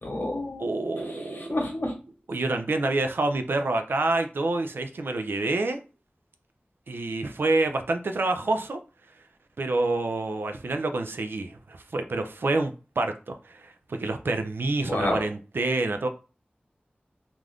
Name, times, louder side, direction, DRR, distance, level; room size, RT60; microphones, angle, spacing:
voice 1, 0.0-0.7 1.1-1.9 14.9-15.3, left 1 dB, 70° left, 1.0 m, -29 dB
voice 2, 0.6-1.6 2.3-5.8 6.9-8.8 9.6-16.1, right 2 dB, 85° right, 0.4 m, -27 dB
2.5 x 2.3 x 3.3 m
wide cardioid pair, 45°, 4 cm